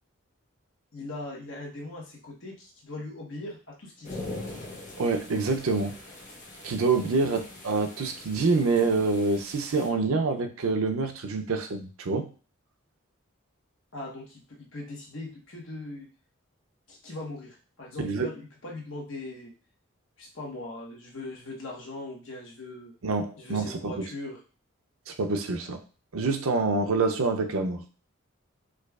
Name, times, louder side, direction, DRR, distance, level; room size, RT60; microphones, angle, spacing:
voice 1, 0.9-4.2 7.0-7.4 13.9-16.1 16.9-19.5 20.2-22.9 23.4-24.4, left 2 dB, 65° left, -2 dB, 1.0 m, -40 dB
sound 1, 4.0-9.9, left 2 dB, 35° left, 0.8 m, -42 dB
voice 2, 5.0-6.0 6.6-12.3 18.0-18.3 23.0-24.0 25.1-25.8 26.1-27.8, right 3 dB, 90° right, 6 dB, 0.5 m, -26 dB
4.7 x 2.3 x 2.3 m, 0.37 s
head